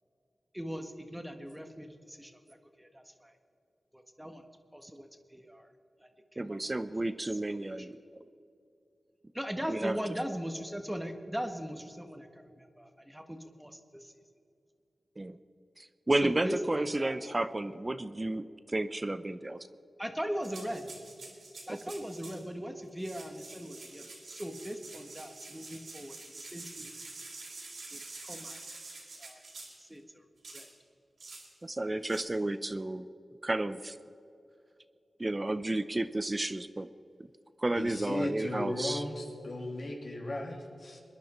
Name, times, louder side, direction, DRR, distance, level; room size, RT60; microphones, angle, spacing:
voice 1, 0.5-3.3 3.9-4.5 4.7-5.7 6.0-6.6 7.0-7.3 7.7-7.9 9.3-14.1 16.2-17.1 20.0-20.9 21.7-26.9 27.9-28.6 29.2-29.4 29.8-30.3 30.5-30.7, equal, 10° right, 5 dB, 1.4 m, -40 dB
voice 2, 6.4-8.0 9.7-10.0 15.2-15.4 15.8-19.6 21.7-21.8 31.6-33.1 33.4-34.0 35.2-36.9 37.6-39.0, right 2 dB, 30° right, 12 dB, 0.6 m, -32 dB
sound 1, 20.4-22.4 22.9-29.9 30.4-30.7 31.2-31.5 32.0-32.2, right 3 dB, 80° right, 3.7 m, -47 dB
voice 3, 37.7-41.0, left 1 dB, 65° left, 0 dB, 2.8 m, -36 dB
22.0 x 10.5 x 4.4 m, 2.7 s
cardioid pair, 45°, 0 cm